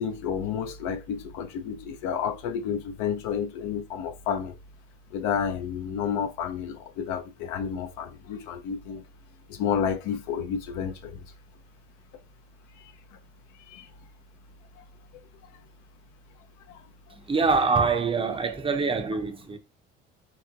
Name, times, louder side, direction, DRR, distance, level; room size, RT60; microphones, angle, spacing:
voice 1, 0.0-4.5 5.1-9.0 9.5-11.2 13.6-13.9 14.8-14.9 16.7-16.8, left 7 dB, 65° left, 0.5 m, -30 dB
voice 2, 17.3-19.6, right 4 dB, 15° right, 0.6 m, -24 dB
3.5 x 2.9 x 2.4 m
hypercardioid pair, 60°, 32 cm